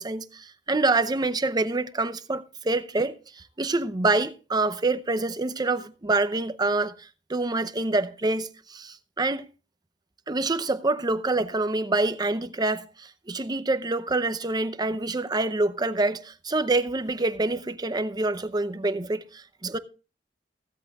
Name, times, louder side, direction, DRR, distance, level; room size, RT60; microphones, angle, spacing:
voice 1, 0.0-3.1 3.6-6.9 7.3-9.5 10.3-19.8, right 2 dB, 25° right, 0.7 m, -26 dB
15.5 x 13.5 x 2.4 m
head